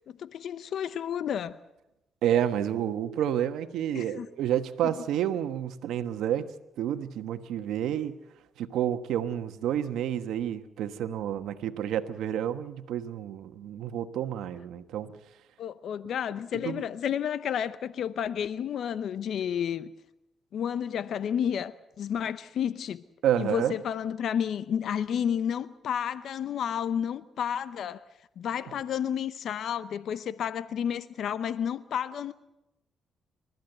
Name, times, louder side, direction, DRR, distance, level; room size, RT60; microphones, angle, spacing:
voice 1, 0.0-1.6 3.9-4.3 15.6-19.9 20.5-23.0 23.4-28.0 28.4-32.3, left 8 dB, 65° left, 0.7 m, -31 dB
voice 2, 2.2-8.2 8.6-15.1 16.5-16.8 23.2-23.8, right 10 dB, 80° right, 1.2 m, -29 dB
29.5 x 14.0 x 8.0 m
cardioid pair, 90°, 0 cm